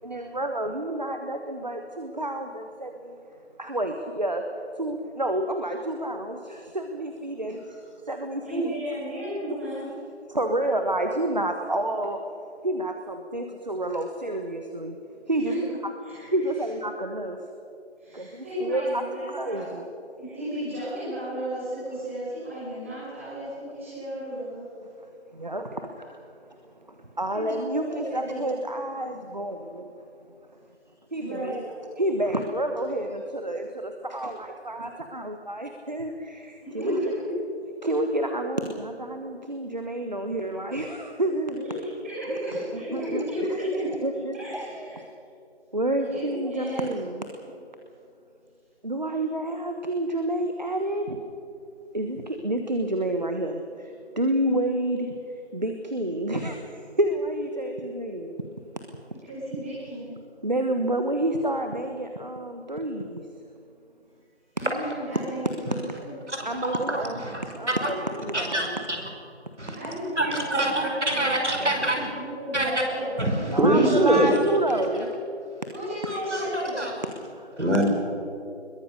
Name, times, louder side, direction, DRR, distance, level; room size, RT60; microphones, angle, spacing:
voice 1, 0.0-3.2 3.6-4.5 4.8-7.8 8.1-8.6 10.3-12.2 12.6-15.0 15.3-15.5 16.3-17.4 18.1-19.8 25.3-26.2 26.9-29.9 31.1-31.6 32.0-37.1 37.8-41.7 42.3-42.4 42.7-43.7 44.0-45.0 45.7-47.3 48.8-51.2 51.9-55.2 55.5-58.3 60.4-63.3 66.4-67.2 67.6-68.8 73.5-75.1 77.3-77.5, right 1 dB, 40° right, 5 dB, 1.2 m, -29 dB
voice 2, 8.4-9.9 15.4-15.6 16.0-16.3 18.0-19.8 20.2-24.7 27.3-28.4 31.2-31.7 36.6-37.3 41.5-45.0 46.0-46.9 59.2-60.1 64.6-66.1 69.7-73.1 75.7-76.9, equal, 10° right, -10 dB, 5.7 m, -33 dB
voice 3, 66.7-67.4 68.3-68.7 69.6-69.8 70.2-72.0 72.5-72.7 73.2-74.3 76.1-76.9 77.6-77.8, right 1 dB, 80° right, 2 dB, 5.5 m, -24 dB
22.0 x 22.0 x 6.6 m, 2.6 s
figure-of-eight pair, 170°, 34 cm